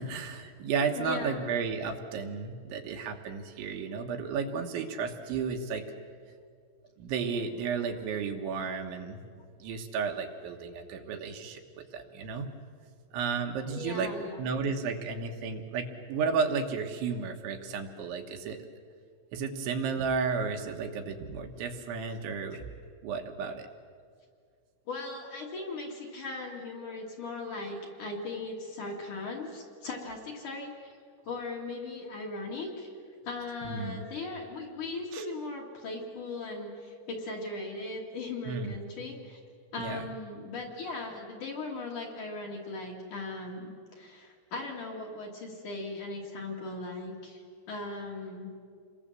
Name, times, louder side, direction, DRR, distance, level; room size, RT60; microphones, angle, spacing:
voice 1, 0.0-5.8 7.0-9.2 9.6-12.5 13.1-14.1 14.4-18.6 19.3-22.6 23.0-23.7 33.7-34.0 35.1-35.2 38.5-38.8 39.8-40.0, right 5 dB, 75° right, 4 dB, 3.6 m, -33 dB
voice 2, 1.0-1.4 13.7-14.4 24.9-30.9 31.3-32.9 33.3-39.4 39.7-48.5, left 3 dB, 45° left, -1 dB, 3.4 m, -38 dB
28.5 x 22.0 x 7.6 m, 2.2 s
omnidirectional pair, 5.7 m